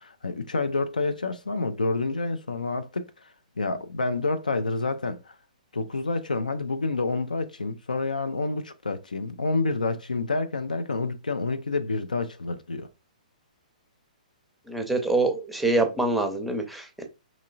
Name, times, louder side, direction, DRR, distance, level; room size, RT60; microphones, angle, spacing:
voice 1, 0.0-3.3 3.6-5.3 5.7-12.9, left 3 dB, 75° left, 0.4 m, -28 dB
voice 2, 14.7-17.0, right 2 dB, ahead, 0.6 m, -25 dB
3.6 x 3.0 x 2.4 m
figure-of-eight pair, 120°, 4 cm